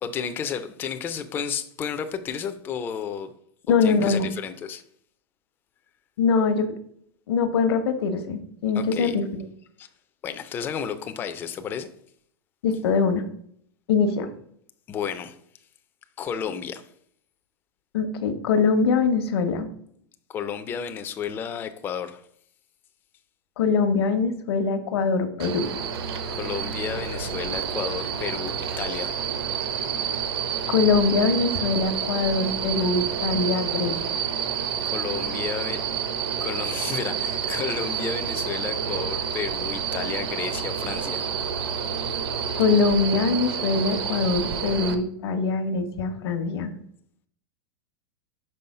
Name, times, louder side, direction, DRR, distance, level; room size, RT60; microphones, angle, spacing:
voice 1, 0.0-3.3 3.8-4.8 8.7-9.2 9.8-9.9 10.2-11.9 14.9-15.4 16.2-16.9 20.3-22.2 26.3-29.1 34.8-35.9 36.4-41.2, left 7 dB, 15° left, 0.3 m, -32 dB
voice 2, 3.7-4.3 6.2-6.7 7.3-9.4 12.6-13.2 13.9-14.3 17.9-19.7 23.6-25.6 30.7-33.9 42.5-46.7, left 4 dB, 75° left, 0.9 m, -23 dB
sound 1, 25.4-44.9, right 7 dB, 75° right, 0.9 m, -29 dB
5.5 x 4.2 x 5.4 m
supercardioid pair, 160°, 13 cm